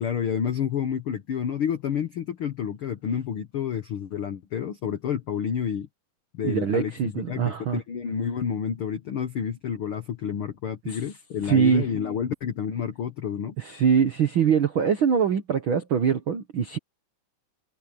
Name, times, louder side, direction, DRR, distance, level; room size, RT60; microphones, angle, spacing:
voice 1, 0.0-5.9 6.3-13.6, left 8 dB, 80° left, 1.2 m, -29 dB
voice 2, 6.4-7.8 10.9-11.0 11.4-11.9 13.6-16.8, right 7 dB, 75° right, 1.1 m, -23 dB
omnidirectional pair, 4.3 m